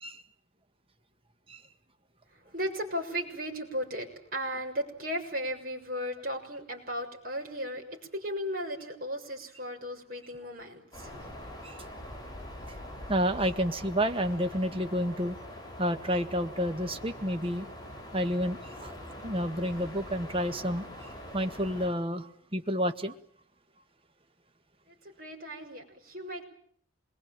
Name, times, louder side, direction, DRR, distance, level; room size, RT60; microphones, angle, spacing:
voice 1, 2.3-11.2 24.9-26.4, equal, 45° right, 2 dB, 6.8 m, -36 dB
sound 1, 10.9-21.9, left 1 dB, 20° left, 7.4 m, -44 dB
voice 2, 13.1-15.4 15.8-17.7 18.1-19.0 19.2-23.2, equal, 25° right, 8 dB, 1.8 m, -30 dB
27.5 x 22.0 x 9.1 m, 0.63 s
head